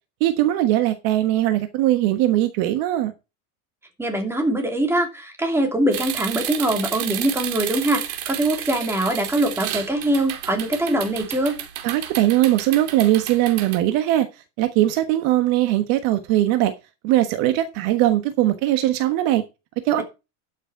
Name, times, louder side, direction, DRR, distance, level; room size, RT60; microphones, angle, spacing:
voice 1, 0.2-3.1 11.8-14.3 14.6-16.7 17.0-19.4 19.8-20.0, right 14 dB, 55° right, 1.4 m, -20 dB
voice 2, 4.0-11.6, right 1 dB, 5° right, 2.8 m, -23 dB
sound 1, 5.9-13.8, right 12 dB, 80° right, 2.5 m, -32 dB
12.5 x 6.7 x 4.6 m
supercardioid pair, 160°, 42 cm